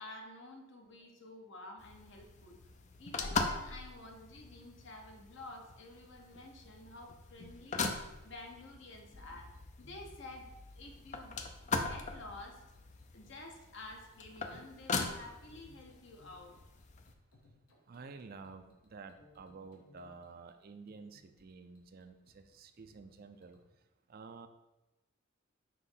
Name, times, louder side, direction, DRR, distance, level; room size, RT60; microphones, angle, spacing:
voice 1, 0.0-2.6 3.0-9.5 9.8-11.4 11.6-12.6 13.1-16.6, left 2 dB, 60° left, 2 dB, 1.0 m, -51 dB
sound 1, 1.8-17.1, left 4 dB, 35° left, 0.5 m, -41 dB
sound 2, 8.7-23.7, left 1 dB, 80° left, 1.3 m, -66 dB
voice 2, 17.9-23.6 24.1-24.5, right 4 dB, 45° right, 8 dB, 0.4 m, -51 dB
5.8 x 3.1 x 5.5 m, 1.0 s
head